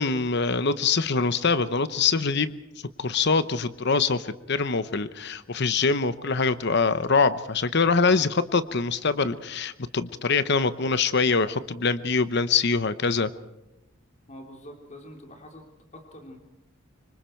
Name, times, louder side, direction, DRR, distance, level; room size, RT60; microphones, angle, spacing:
voice 1, 0.0-2.6 3.0-13.3, left 4 dB, 55° left, 13 dB, 0.9 m, -24 dB
voice 2, 14.3-15.6 15.9-16.4, left 1 dB, 35° left, 2 dB, 3.3 m, -45 dB
25.5 x 24.5 x 4.5 m, 0.96 s
head